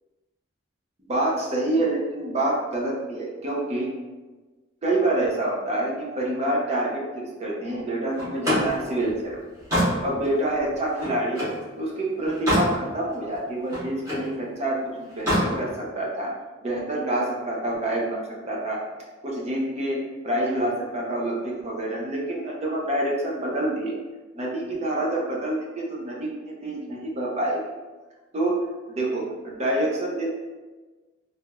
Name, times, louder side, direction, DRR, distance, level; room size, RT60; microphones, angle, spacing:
voice 1, 1.1-3.9 4.8-9.4 10.0-11.4 11.8-16.3 16.6-18.2 18.5-18.8 19.2-23.9 24.3-27.6 28.3-30.3, right 1 dB, 35° right, -3 dB, 0.6 m, -27 dB
Slam, 8.2-11.6 12.1-12.8 13.1-14.3 15.1-15.5, equal, 15° right, 1.4 m, -26 dB
3.3 x 2.8 x 2.3 m, 1.3 s
head